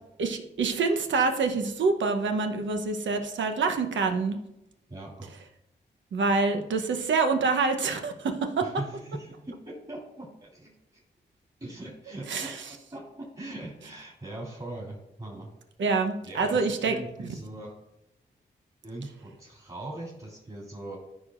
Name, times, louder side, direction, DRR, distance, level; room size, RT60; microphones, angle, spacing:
voice 1, 0.2-4.4 6.1-8.7 12.3-12.6 15.8-17.0, right 4 dB, 80° right, 6 dB, 0.9 m, -26 dB
voice 2, 4.9-5.4 6.3-6.5 8.6-10.7 11.6-15.5 16.2-17.7 18.8-21.0, right 2 dB, 30° right, -4 dB, 3.0 m, -40 dB
13.0 x 5.0 x 2.5 m, 0.86 s
supercardioid pair, 45°, 19 cm